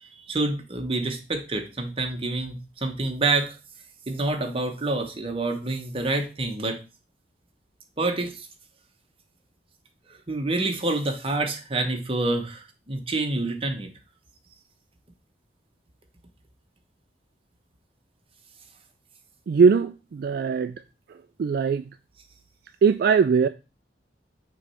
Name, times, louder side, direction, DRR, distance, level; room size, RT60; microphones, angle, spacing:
voice 1, 0.0-3.6 4.1-6.8 8.0-8.5 10.3-13.9, right 2 dB, 30° right, 1.0 m, -27 dB
voice 2, 19.5-20.7 21.4-21.9 22.8-23.5, right 5 dB, 60° right, 0.3 m, -20 dB
6.1 x 3.2 x 5.5 m
head